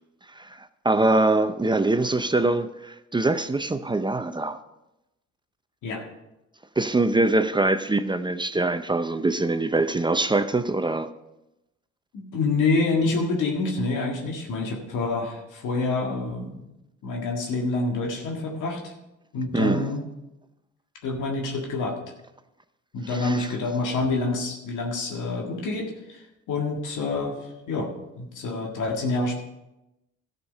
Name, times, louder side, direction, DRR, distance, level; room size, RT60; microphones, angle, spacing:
voice 1, 0.4-4.6 6.8-11.1 19.5-19.9 23.1-23.5, right 2 dB, 15° right, 10 dB, 0.5 m, -23 dB
voice 2, 12.1-16.6 17.0-18.9 19.3-20.0 21.0-22.0 22.9-29.4, left 3 dB, 85° left, 0 dB, 1.8 m, -27 dB
13.5 x 6.6 x 5.4 m, 0.93 s
cardioid pair, 90°, 30 cm